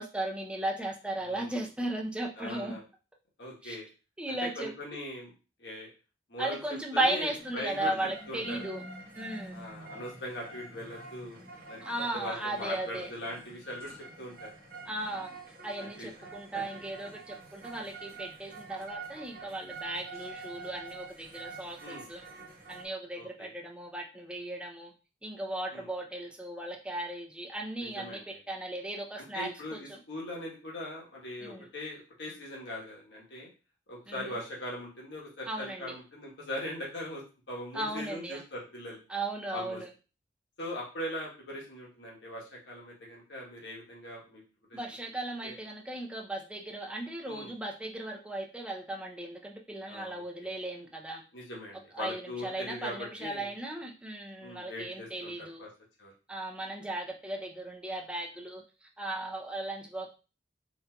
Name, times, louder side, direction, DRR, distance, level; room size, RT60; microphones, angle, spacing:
voice 1, 0.0-2.8 3.6-3.8 4.2-4.7 6.4-8.8 9.2-9.6 11.8-13.1 14.9-15.3 15.6-22.2 22.7-24.9 25.2-30.0 31.4-31.7 34.1-34.3 35.5-35.9 37.7-38.4 39.1-39.9 44.7-51.2 51.9-55.7 56.3-60.1, right 1 dB, 5° right, 1 dB, 0.4 m, -36 dB
voice 2, 1.2-1.6 2.4-2.8 3.4-3.9 4.3-5.3 5.6-5.9 6.3-6.6 6.9-7.9 8.3-8.6 9.5-11.4 11.6-13.9 14.2-14.5 15.8-16.8 21.8-22.0 23.2-23.5 25.7-25.9 27.8-28.4 29.2-33.5 33.9-37.2 37.5-39.0 39.5-39.8 40.6-44.4 44.7-44.8 45.4-45.6 47.2-47.5 49.9-50.2 51.3-53.5 54.4-55.7 56.0-56.1, left 1 dB, 70° left, -3 dB, 1.1 m, -41 dB
sound 1, 7.3-22.9, right 3 dB, 50° right, 0.9 m, -47 dB
3.8 x 2.7 x 2.2 m, 0.34 s
head